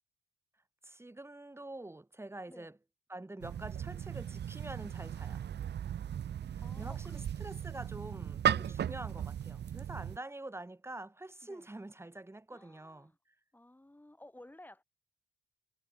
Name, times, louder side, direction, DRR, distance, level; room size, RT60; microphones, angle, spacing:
voice 1, 0.8-2.7 3.1-5.4 6.5-13.1, right 2 dB, 10° right, 3.7 m, -46 dB
sound 1, 3.4-10.2, right 9 dB, 60° right, 2.0 m, -36 dB
voice 2, 6.6-7.2 8.5-8.9 11.4-11.7 12.5-13.2 13.5-14.8, left 1 dB, 10° left, 7.7 m, -55 dB
cardioid pair, 90°, 20 cm